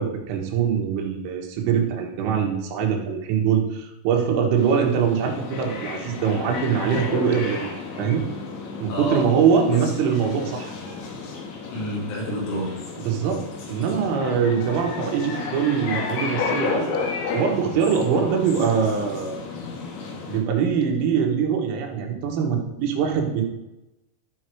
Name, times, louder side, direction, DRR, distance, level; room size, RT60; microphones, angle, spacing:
voice 1, 0.0-7.7 8.0-8.2 8.8-10.7 13.1-16.9 17.3-19.4 20.3-23.4, right 7 dB, 80° right, 2 dB, 3.8 m, -23 dB
sound 1, 4.6-20.4, left 4 dB, 65° left, 3.0 m, -32 dB
voice 2, 8.9-9.4 9.7-9.8 11.7-12.8 18.1-18.4, equal, 90° left, -3 dB, 5.5 m, -29 dB
14.0 x 5.3 x 4.6 m, 0.97 s
omnidirectional pair, 5.9 m